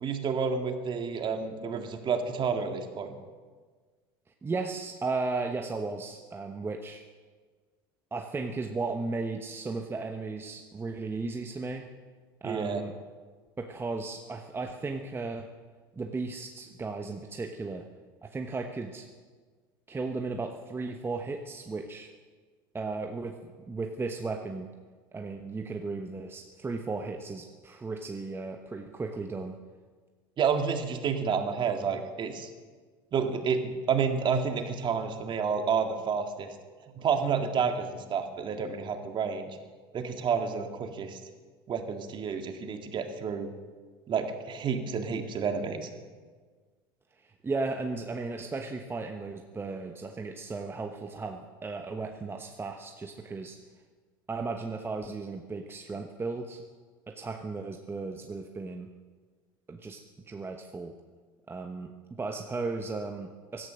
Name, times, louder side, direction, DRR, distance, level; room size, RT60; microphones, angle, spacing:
voice 1, 0.0-3.2 12.4-12.8 30.4-32.5 33.1-36.5 37.0-39.5 39.9-41.2 41.7-43.5 44.1-45.9, right 6 dB, 40° right, 6 dB, 2.0 m, -30 dB
voice 2, 4.4-7.0 8.1-11.8 12.4-12.9 13.6-15.5 16.0-17.9 18.2-19.1 19.9-22.1 22.7-24.7 25.1-29.6 47.2-53.6 54.3-56.6 57.1-58.9 59.7-60.0 60.3-60.9 61.5-63.7, right 3 dB, 20° right, 4 dB, 1.1 m, -35 dB
16.5 x 12.5 x 6.4 m, 1.5 s
hypercardioid pair, 85°, 12 cm